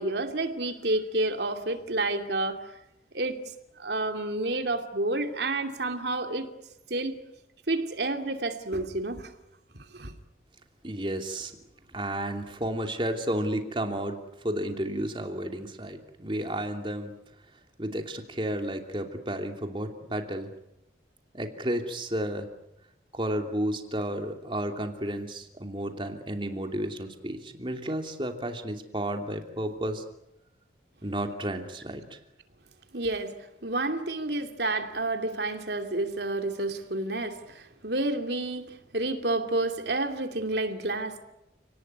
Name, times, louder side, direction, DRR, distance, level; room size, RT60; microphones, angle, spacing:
voice 1, 0.0-2.6 3.1-3.4 3.8-6.5 6.9-7.1 7.7-9.2 9.9-10.1 32.9-33.3 33.6-38.6 38.9-41.2, right 2 dB, 65° right, 2.7 m, -29 dB
voice 2, 10.8-11.5 11.9-14.2 14.4-17.1 17.8-20.5 21.3-22.5 23.1-30.0 31.0-32.2, right 1 dB, 25° right, 2.9 m, -32 dB
29.5 x 19.0 x 9.5 m
head